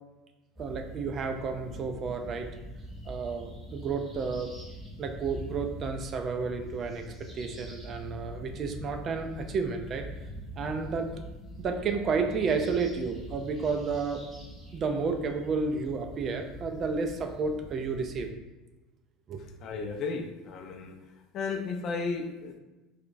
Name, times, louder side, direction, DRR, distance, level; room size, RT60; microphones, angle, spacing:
sound 1, 0.6-18.3, equal, 10° right, 1.1 m, -44 dB
voice 1, 0.6-2.5 3.1-4.5 5.0-10.1 10.6-11.1 11.6-14.2 14.7-18.3 19.3-19.4, right 4 dB, 35° right, 5 dB, 0.4 m, -31 dB
voice 2, 19.6-20.9 21.3-22.6, left 4 dB, 45° left, 5 dB, 0.4 m, -34 dB
4.8 x 2.2 x 2.6 m, 1.1 s
supercardioid pair, 135°, 0 cm